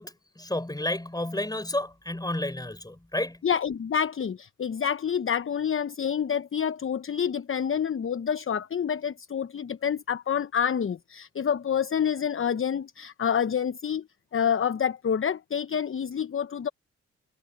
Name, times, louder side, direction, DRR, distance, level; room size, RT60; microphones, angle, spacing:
voice 1, 0.0-3.4, left 1 dB, 10° left, 4.7 m, -31 dB
voice 2, 3.4-14.0 14.3-16.7, left 8 dB, 40° left, 0.9 m, -28 dB
supercardioid pair, 45°, 32 cm